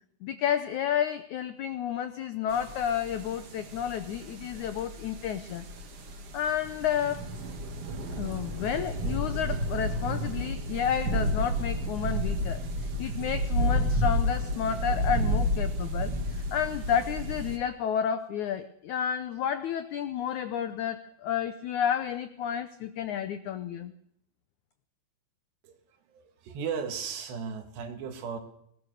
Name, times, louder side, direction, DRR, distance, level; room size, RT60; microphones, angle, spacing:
voice 1, 0.2-5.7 6.3-7.3 8.2-12.6 13.0-23.9, left 9 dB, 90° left, 11 dB, 1.6 m, -31 dB
sound 1, 2.5-17.6, equal, 45° right, 2.3 m, -31 dB
voice 2, 25.6-28.4, right 6 dB, 85° right, 6 dB, 4.2 m, -36 dB
21.5 x 19.0 x 6.5 m, 0.72 s
omnidirectional pair, 4.7 m